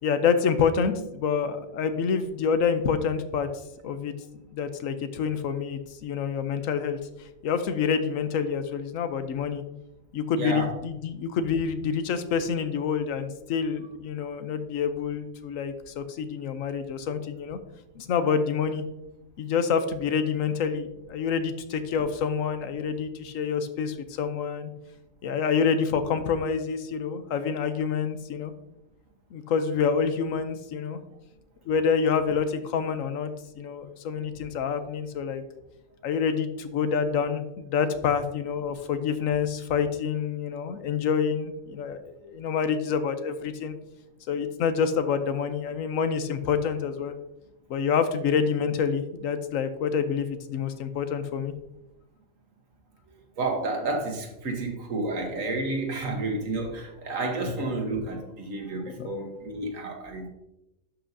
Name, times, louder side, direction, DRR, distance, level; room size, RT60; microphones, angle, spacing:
voice 1, 0.0-3.5 3.8-4.1 4.5-7.0 7.4-9.6 10.1-17.6 17.9-18.8 19.4-24.7 25.2-28.5 29.3-31.0 31.7-33.3 33.6-35.4 36.0-43.7 44.3-47.1 47.7-51.5 59.0-59.1, left 6 dB, 85° left, 1.2 m, -27 dB
voice 2, 10.4-10.7 53.4-60.3, right 2 dB, 80° right, 1.7 m, -30 dB
11.5 x 5.7 x 2.7 m
omnidirectional pair, 1.3 m